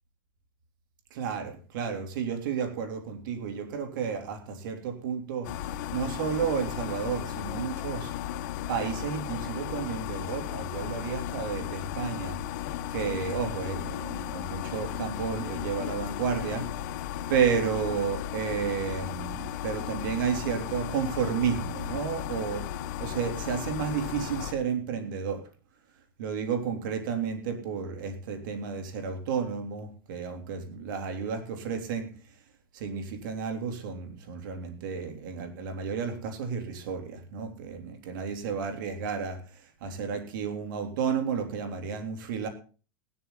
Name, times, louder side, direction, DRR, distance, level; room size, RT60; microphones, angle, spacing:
voice 1, 1.1-5.5 5.9-8.1 8.7-12.4 12.9-16.7 17.3-22.7 23.0-25.4 26.2-32.1 32.7-42.5, right 6 dB, 65° right, 6 dB, 3.4 m, -32 dB
sound 1, 5.4-24.5, left 11 dB, 55° left, 1.4 m, -35 dB
17.5 x 13.0 x 4.0 m, 0.37 s
supercardioid pair, 145°, 11 cm